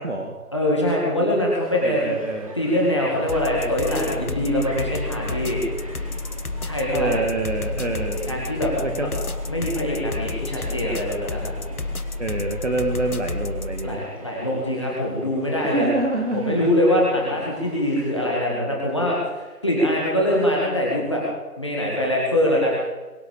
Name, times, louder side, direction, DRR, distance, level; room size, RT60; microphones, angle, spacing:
voice 1, 0.0-0.4 1.8-2.6 6.9-8.2 8.8-9.1 12.2-14.0 15.7-16.7, right 2 dB, 45° right, 2 dB, 2.2 m, -26 dB
voice 2, 0.5-2.1 2.5-5.6 6.6-7.2 8.3-8.7 9.0-9.1 9.5-11.5 13.8-15.9 16.3-21.2 21.6-22.8, left 1 dB, 20° left, -4 dB, 2.0 m, -23 dB
sound 1, 1.6-18.3, equal, 20° right, 2.1 m, -41 dB
sound 2, 3.3-14.0, left 3 dB, 65° left, 1.4 m, -31 dB
22.0 x 7.5 x 8.7 m, 1.2 s
figure-of-eight pair, 170°, 46 cm